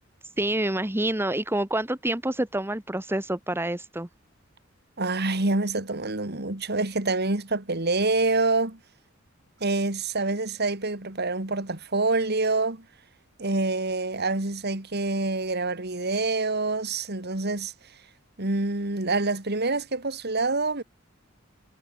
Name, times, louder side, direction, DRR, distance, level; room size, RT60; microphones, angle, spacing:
voice 1, 0.4-4.1, right 1 dB, 10° right, 1.4 m, -27 dB
voice 2, 5.0-8.8 9.6-12.8 13.4-17.7 18.4-20.8, right 3 dB, 55° right, 2.7 m, -26 dB
head